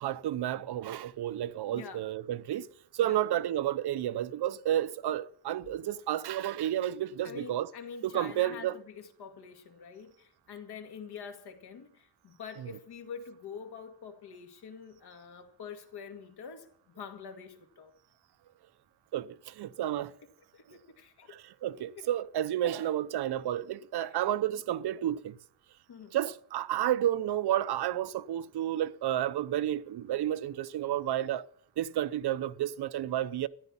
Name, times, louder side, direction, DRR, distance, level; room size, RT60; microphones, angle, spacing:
voice 1, 0.0-2.7 2.9-7.7 8.0-8.7 19.1-20.1 21.6-25.4 26.1-31.5 31.8-33.5, right 12 dB, 75° right, 0.7 m, -31 dB
voice 2, 1.7-2.1 3.0-3.2 7.2-17.9 19.9-20.1 20.5-21.4 21.9-22.1 24.0-24.2 25.9-26.2, left 6 dB, 75° left, 2.2 m, -46 dB
13.5 x 11.0 x 7.1 m
wide cardioid pair, 155°, 40 cm